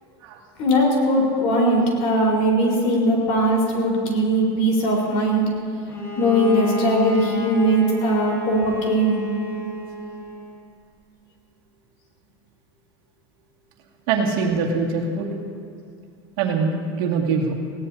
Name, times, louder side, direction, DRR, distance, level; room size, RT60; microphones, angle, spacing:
voice 1, 0.6-5.5 6.2-9.2, right 1 dB, 50° left, -2 dB, 4.5 m, -20 dB
Bowed string instrument, 5.9-10.6, left 3 dB, 20° left, 2.4 m, -31 dB
voice 2, 14.1-15.4 16.4-17.5, right 4 dB, 60° right, -1 dB, 2.2 m, -23 dB
20.0 x 16.5 x 2.8 m, 2.3 s
supercardioid pair, 135°, 13 cm